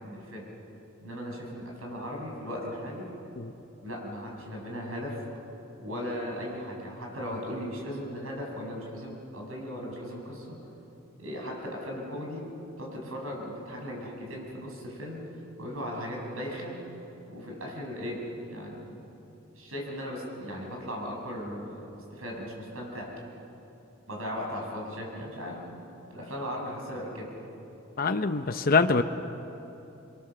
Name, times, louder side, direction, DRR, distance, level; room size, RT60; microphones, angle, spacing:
voice 1, 0.0-0.5 1.0-3.1 3.8-5.2 5.8-10.5 11.2-12.4 12.8-15.2 15.6-16.8 17.3-18.2 18.5-19.0 19.6-23.1 24.1-25.6 26.1-27.3, equal, 80° right, -1 dB, 6.4 m, -37 dB
voice 2, 28.0-29.0, left 4 dB, 45° left, 8 dB, 0.8 m, -24 dB
26.5 x 22.0 x 6.9 m, 2.9 s
head